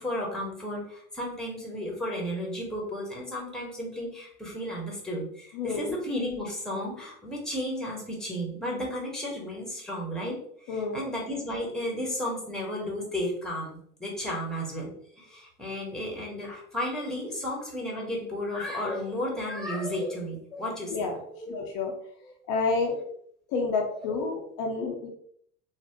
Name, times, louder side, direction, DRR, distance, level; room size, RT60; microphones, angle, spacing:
voice 1, 0.0-10.4 10.7-21.5 22.2-22.3, left 1 dB, ahead, -2 dB, 1.1 m, -33 dB
voice 2, 5.5-5.9 10.7-11.0 20.9-21.2 21.5-21.9 22.5-23.0 23.5-25.1, left 4 dB, 55° left, 1 dB, 0.7 m, -29 dB
3.1 x 2.1 x 2.9 m, 0.64 s
hypercardioid pair, 75°, 43 cm